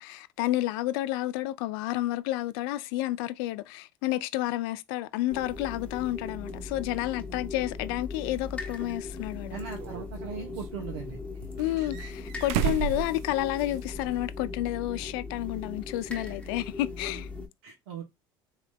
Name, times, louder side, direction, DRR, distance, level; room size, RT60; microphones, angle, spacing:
voice 1, 0.0-9.6 11.6-17.3, left 15 dB, 75° left, 0.4 m, -30 dB
sound 1, 5.3-17.5, left 3 dB, 10° left, 0.9 m, -39 dB
sound 2, 8.8-8.9 9.8-10.7 11.6-13.9 14.2-14.3 15.9-16.0, right 9 dB, 70° right, 0.4 m, -33 dB
voice 2, 9.5-11.2 17.6-18.0, right 6 dB, 85° right, 0.8 m, -39 dB
3.2 x 2.9 x 2.2 m
hypercardioid pair, 75°, 12 cm